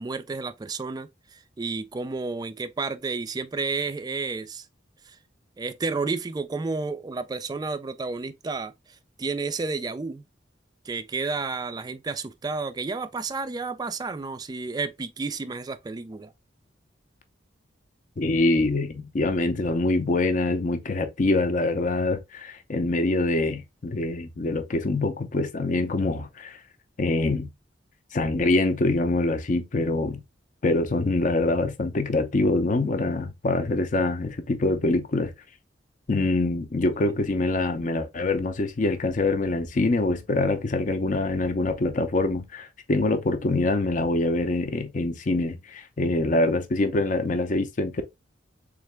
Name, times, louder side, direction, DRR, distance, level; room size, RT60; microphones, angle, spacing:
voice 1, 0.0-4.7 5.1-5.2 5.6-10.2 10.8-16.3, right 4 dB, 20° right, 0.3 m, -31 dB
voice 2, 18.2-26.6 27.0-27.5 28.1-30.2 30.6-35.3 36.1-48.0, left 2 dB, 45° left, 0.5 m, -25 dB
3.7 x 3.3 x 3.3 m
head